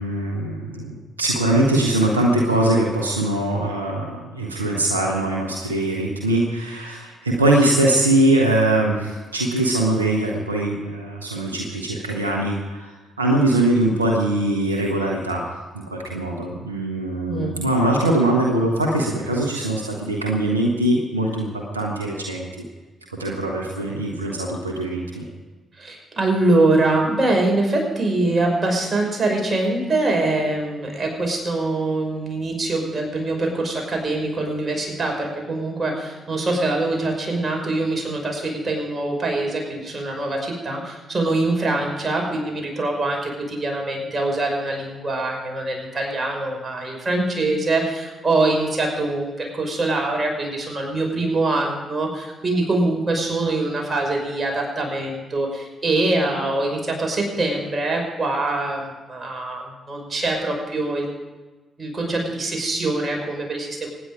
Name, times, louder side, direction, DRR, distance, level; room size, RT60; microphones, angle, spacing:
voice 1, 0.0-12.9 13.2-15.5 15.7-22.5 23.2-25.3, right 1 dB, 90° right, 0 dB, 1.2 m, -22 dB
voice 2, 25.8-61.1 61.8-63.9, right 2 dB, 30° right, 1 dB, 5.9 m, -23 dB
25.0 x 10.0 x 5.0 m, 1.2 s
figure-of-eight pair, 40°, 0 cm